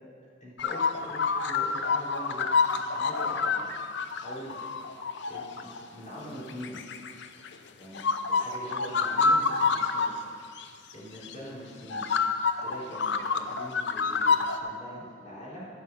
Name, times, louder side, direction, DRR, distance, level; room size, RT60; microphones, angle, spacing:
voice 1, 0.4-2.5 2.9-3.7 4.2-4.9 5.3-6.8 7.8-8.0 8.3-10.5 10.9-12.0 12.6-15.6, equal, 40° left, -7 dB, 3.3 m, -43 dB
Front-Yard Magpies, 0.6-5.8 6.5-7.6 7.9-10.1 10.6-10.7 11.2-11.3 11.9-14.6, left 4 dB, 65° left, 0.6 m, -27 dB
12.0 x 5.6 x 7.3 m, 2.3 s
head